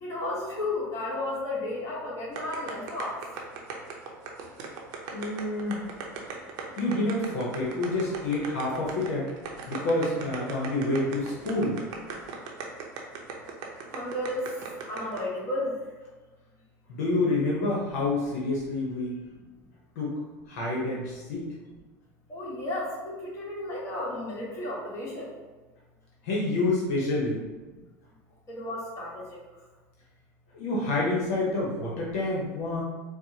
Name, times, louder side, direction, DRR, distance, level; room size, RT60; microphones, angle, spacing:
voice 1, 0.0-3.2 13.9-14.4 14.9-15.7 22.3-25.3 28.5-29.2, left 1 dB, 40° left, -5 dB, 1.4 m, -33 dB
sound 1, 2.4-15.2, right 6 dB, 65° right, 0.7 m, -38 dB
voice 2, 5.1-5.8 6.8-9.3 9.7-11.8 16.9-19.2 20.0-20.1 20.5-21.5 26.2-27.4 30.5-32.8, left 2 dB, 80° left, -4 dB, 0.9 m, -28 dB
4.5 x 2.1 x 2.8 m, 1.3 s
supercardioid pair, 95°, 8 cm